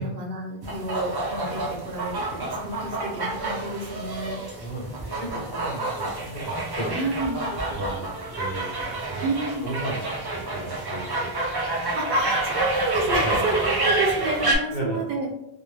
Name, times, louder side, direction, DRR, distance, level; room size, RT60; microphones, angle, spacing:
voice 1, 0.0-4.4 6.9-7.4 9.2-9.6 12.0-15.3, right 2 dB, 75° right, 0 dB, 0.8 m, -29 dB
sound 1, 0.6-14.5, right 2 dB, 40° right, 0.3 m, -28 dB
voice 2, 4.6-6.9 7.7-8.1 8.4-9.3 9.6-11.1 11.4-11.5 11.8-11.9 13.2-13.4 14.7-15.0, right 1 dB, 50° left, -5 dB, 1.0 m, -34 dB
2.2 x 2.1 x 3.1 m, 0.86 s
omnidirectional pair, 1.0 m